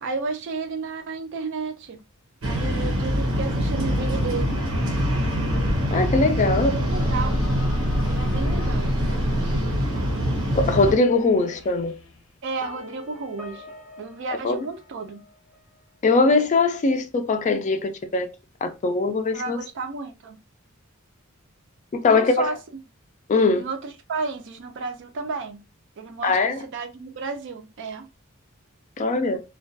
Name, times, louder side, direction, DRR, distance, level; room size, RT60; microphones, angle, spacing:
voice 1, 0.0-2.0 2.4-4.6 6.4-7.4 8.0-8.9 12.4-13.7 14.0-15.2 19.3-20.4 22.1-22.6 23.6-25.7 26.0-28.1, right 4 dB, 60° right, 0.4 m, -32 dB
sound 1, 2.4-10.9, equal, 85° right, 0.8 m, -24 dB
voice 2, 5.9-6.7 10.6-11.9 14.4-14.6 16.0-18.3 18.6-19.6 22.0-22.5 23.3-23.7 26.2-26.6 29.0-29.4, left 3 dB, 35° left, 0.3 m, -21 dB
sound 2, 6.9-12.4, equal, 85° left, 0.6 m, -31 dB
sound 3, 12.6-15.5, left 3 dB, 10° right, 0.7 m, -44 dB
2.3 x 2.2 x 2.5 m
head